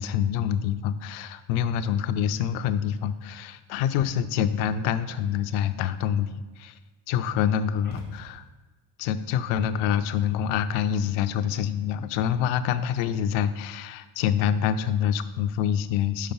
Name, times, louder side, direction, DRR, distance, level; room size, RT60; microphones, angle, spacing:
voice 1, 0.0-6.8 7.1-8.4 9.0-16.3, left 9 dB, 85° left, 12 dB, 0.6 m, -26 dB
sound 1, 7.8-8.9, right 1 dB, 75° right, 1.7 m, -43 dB
5.7 x 5.0 x 5.4 m, 1.2 s
supercardioid pair, 75°, 48 cm